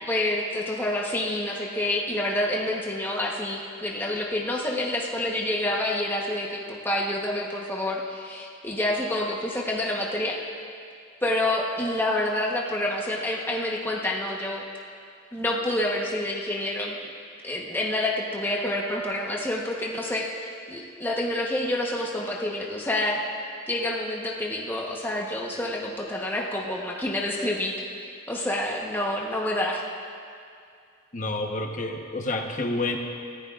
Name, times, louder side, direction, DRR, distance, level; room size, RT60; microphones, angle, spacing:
voice 1, 0.0-10.4 11.2-14.6 15.3-17.0 17.4-23.2 23.7-29.8, left 1 dB, 10° left, -2 dB, 1.0 m, -28 dB
voice 2, 31.1-33.0, left 2 dB, 40° left, 2 dB, 1.1 m, -29 dB
23.0 x 15.0 x 2.5 m, 2.3 s
head